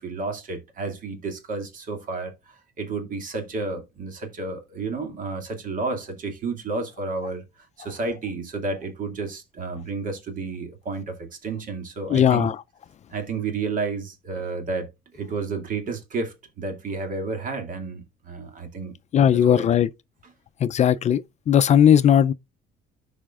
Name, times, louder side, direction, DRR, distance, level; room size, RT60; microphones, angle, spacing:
voice 1, 0.0-7.4 7.8-12.5 13.1-19.0 19.3-19.7, right 3 dB, 50° right, 2.3 m, -31 dB
voice 2, 12.1-12.6 19.1-19.9 20.6-22.3, left 9 dB, 45° left, 0.4 m, -18 dB
13.5 x 5.0 x 2.4 m
cardioid pair, 110°, 17 cm